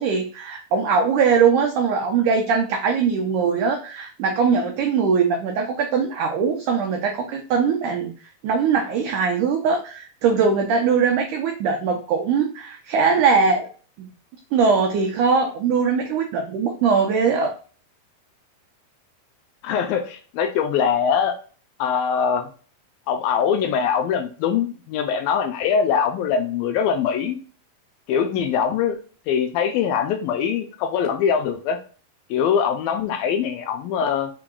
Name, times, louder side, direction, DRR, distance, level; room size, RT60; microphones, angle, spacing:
voice 1, 0.0-13.7 14.0-14.1 14.5-17.5, right 5 dB, 90° right, 2 dB, 1.7 m, -21 dB
voice 2, 19.6-21.3 21.8-22.5 23.1-27.4 28.1-29.0 29.3-31.8 32.3-34.3, left 7 dB, 80° left, 5 dB, 2.2 m, -22 dB
5.8 x 3.7 x 2.3 m, 0.39 s
omnidirectional pair, 4.5 m